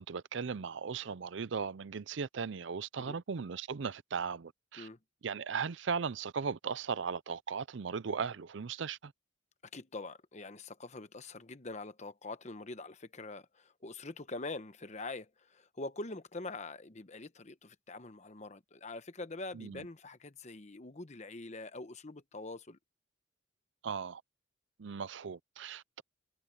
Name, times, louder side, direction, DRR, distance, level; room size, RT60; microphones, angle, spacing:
voice 1, 0.0-4.9 5.2-9.1 19.5-19.8 23.8-24.2 24.8-26.0, right 6 dB, 70° right, 0.5 m, -37 dB
voice 2, 9.7-22.8, left 2 dB, 35° left, 1.0 m, -44 dB
head